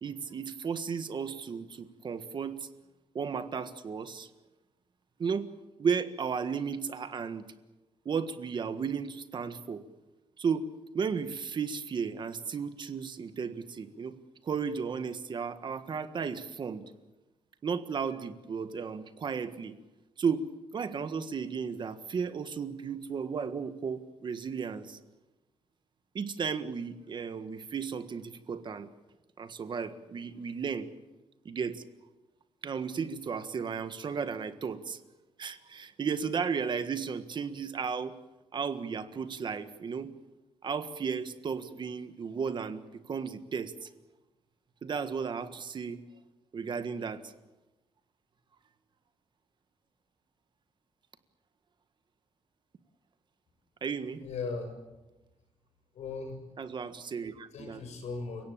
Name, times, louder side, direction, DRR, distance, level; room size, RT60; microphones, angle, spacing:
voice 1, 0.0-2.7 3.1-4.3 5.2-5.5 5.8-7.5 8.0-9.8 10.4-10.7 10.9-14.2 14.4-16.8 17.6-19.7 20.2-20.5 20.7-25.0 26.1-28.9 29.4-30.9 31.4-31.8 32.6-35.0 35.4-38.1 38.5-40.1 40.6-42.8 43.1-43.9 44.8-46.0 46.5-47.2 53.8-54.2 56.6-57.8, right 6 dB, 45° right, 10 dB, 1.6 m, -34 dB
voice 2, 54.2-54.7 55.9-56.4 57.5-58.4, left 4 dB, 75° left, 6 dB, 7.0 m, -37 dB
30.0 x 17.5 x 8.7 m, 1.1 s
wide cardioid pair, 155°, 11 cm